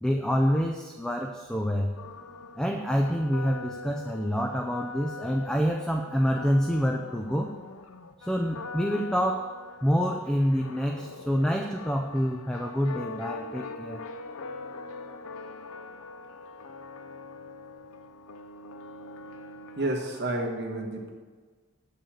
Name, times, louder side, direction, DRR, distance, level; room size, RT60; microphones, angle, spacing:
voice 1, 0.0-1.9 2.6-7.5 8.2-14.0, equal, 5° left, 3 dB, 0.4 m, -27 dB
sound 1, 2.0-20.5, left 3 dB, 75° left, 0.6 m, -43 dB
voice 2, 19.8-21.1, right 2 dB, 45° right, -1 dB, 1.4 m, -30 dB
8.6 x 5.5 x 7.3 m, 1.4 s
head